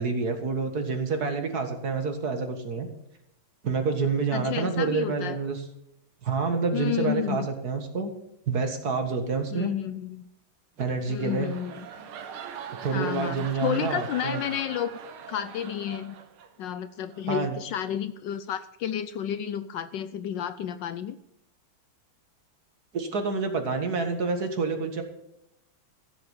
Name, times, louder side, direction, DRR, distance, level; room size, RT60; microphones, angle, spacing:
voice 1, 0.0-2.9 3.6-5.6 6.2-8.1 8.5-9.7 10.8-11.5 12.8-14.4 17.3-17.6 22.9-25.0, right 4 dB, 50° right, 6 dB, 2.0 m, -28 dB
voice 2, 4.3-5.4 6.7-7.5 9.5-10.2 11.1-11.9 12.9-14.9 15.3-16.1 16.6-21.2, left 10 dB, 70° left, 13 dB, 1.2 m, -31 dB
sound 1, 10.8-16.7 17.1-17.4, right 7 dB, 85° right, 2.0 m, -42 dB
15.0 x 7.8 x 7.1 m, 0.81 s
omnidirectional pair, 2.3 m